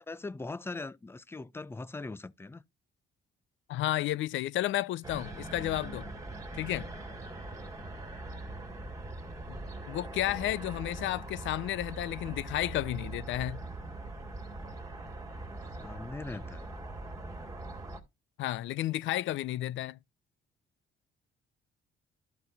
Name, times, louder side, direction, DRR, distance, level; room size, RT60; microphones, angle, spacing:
voice 1, 0.1-2.6 6.7-6.9 15.8-16.7, left 3 dB, 10° left, 0.4 m, -41 dB
voice 2, 3.7-6.1 6.5-6.9 9.5-9.6 9.9-13.6 18.4-20.0, left 14 dB, 75° left, 0.5 m, -32 dB
sound 1, 5.0-18.0, right 2 dB, 15° right, 2.0 m, -42 dB
12.5 x 4.4 x 3.9 m
cardioid pair, 90°, 20 cm